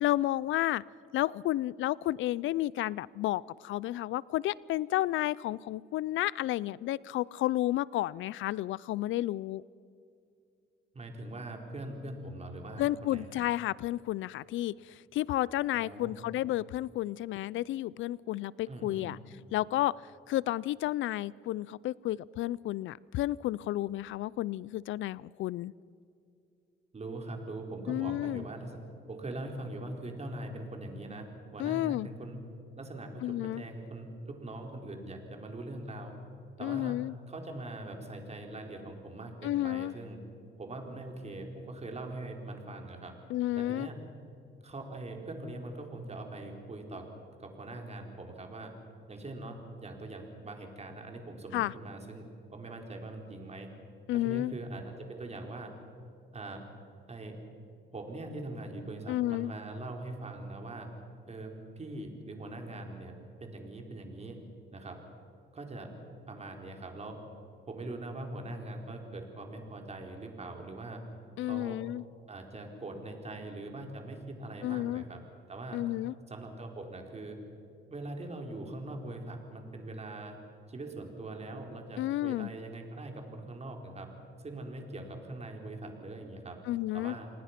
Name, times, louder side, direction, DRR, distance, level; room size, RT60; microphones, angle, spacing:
voice 1, 0.0-0.8 1.1-9.6 12.8-19.2 19.5-20.0 20.3-25.7 27.9-28.4 31.6-32.1 33.2-33.6 36.6-37.1 39.4-39.9 43.3-43.9 51.5-51.7 54.1-54.5 59.1-59.5 71.4-72.0 74.6-75.0 75.7-76.1 82.0-82.5 86.7-87.1, left 15 dB, 75° left, 23 dB, 0.4 m, -31 dB
voice 2, 10.9-13.3 15.7-16.1 18.7-19.1 26.9-28.8 29.1-31.3 31.5-32.4 32.8-36.1 36.6-37.0 37.3-40.2 40.6-43.1 43.6-44.0 44.6-47.1 47.4-48.7 49.1-52.3 52.5-53.7 54.1-55.7 56.3-56.7 57.1-57.4 57.9-60.9 61.3-64.4 64.7-65.0 65.5-65.9 66.3-67.2 67.7-71.0 71.4-71.8 72.3-75.2 75.5-75.8 76.3-77.4 77.9-80.4 80.7-84.1 84.4-86.6 86.9-87.3, right 2 dB, 35° right, 3 dB, 4.1 m, -42 dB
27.5 x 20.0 x 5.9 m, 2.5 s
cardioid pair, 90°, 20 cm